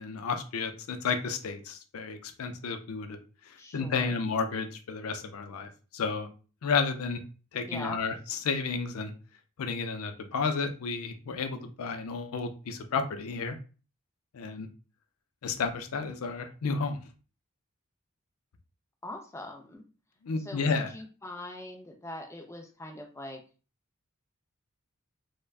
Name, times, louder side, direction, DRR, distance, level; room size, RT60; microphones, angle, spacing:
voice 1, 0.0-3.2 3.5-6.3 6.6-7.2 7.5-9.1 9.6-13.6 14.3-14.7 15.4-17.0 20.2-20.9, left 4 dB, 80° left, 8 dB, 0.5 m, -32 dB
voice 2, 3.6-4.2 7.5-8.2 19.0-19.8 20.4-23.4, left 1 dB, 10° left, 3 dB, 0.4 m, -42 dB
3.4 x 2.1 x 2.3 m, 0.36 s
head